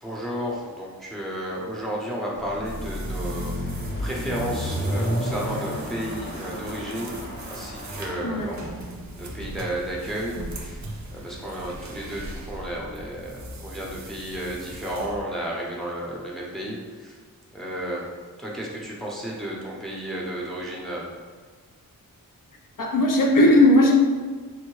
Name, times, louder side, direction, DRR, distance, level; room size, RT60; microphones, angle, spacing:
voice 1, 0.0-3.7 4.0-7.2 7.4-8.6 9.2-10.8 11.1-17.2 17.5-18.0 18.4-21.0, right 1 dB, ahead, -4 dB, 0.7 m, -32 dB
Car passing by / Accelerating revving vroom, 2.3-8.4, equal, 30° left, 0.7 m, -31 dB
sound 1, 2.6-15.2, right 1 dB, 55° right, 0.5 m, -40 dB
voice 2, 8.2-8.6 22.8-23.9, left 1 dB, 65° left, 0 dB, 0.5 m, -17 dB
3.5 x 2.1 x 3.1 m, 1.5 s
wide cardioid pair, 95°, 35 cm